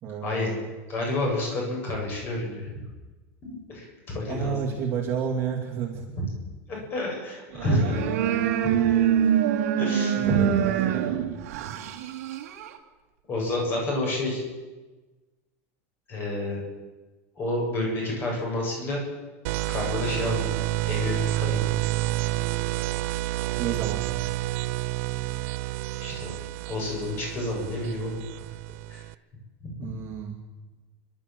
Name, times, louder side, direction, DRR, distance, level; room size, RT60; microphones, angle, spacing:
voice 1, 0.0-0.7 4.3-6.2 9.2-9.4 10.3-11.2 23.6-24.0 29.8-30.4, right 7 dB, 30° right, 0 dB, 2.7 m, -31 dB
voice 2, 0.9-2.7 3.4-4.7 6.2-6.3 6.7-8.1 8.6-8.7 9.8-10.4 13.3-14.4 16.1-16.6 17.4-19.0 19.7-20.5 20.9-21.7 26.0-26.4 26.7-28.2 28.9-29.0 29.6-29.7, left 1 dB, 25° left, -1 dB, 7.6 m, -29 dB
sound 1, 7.5-12.8, right 9 dB, 80° right, 2.4 m, -25 dB
sound 2, 19.5-29.1, right 17 dB, 55° right, 0.6 m, -29 dB
30.0 x 12.5 x 7.7 m, 1.2 s
supercardioid pair, 175°, 8 cm